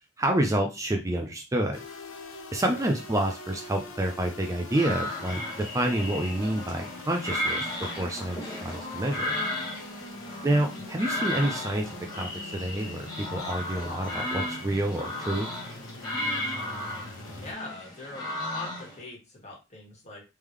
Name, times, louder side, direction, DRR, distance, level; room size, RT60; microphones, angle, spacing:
voice 1, 0.2-1.8 2.5-9.4 10.4-15.5, right 1 dB, 15° right, 2 dB, 0.5 m, -28 dB
sound 1, 1.7-17.5, left 2 dB, 75° left, 0.9 m, -43 dB
voice 2, 2.6-3.0 10.1-10.4 17.2-20.2, left 2 dB, 35° left, -2 dB, 1.6 m, -43 dB
sound 2, 4.7-19.0, left 1 dB, 20° left, 1.2 m, -34 dB
3.6 x 3.2 x 3.2 m, 0.28 s
head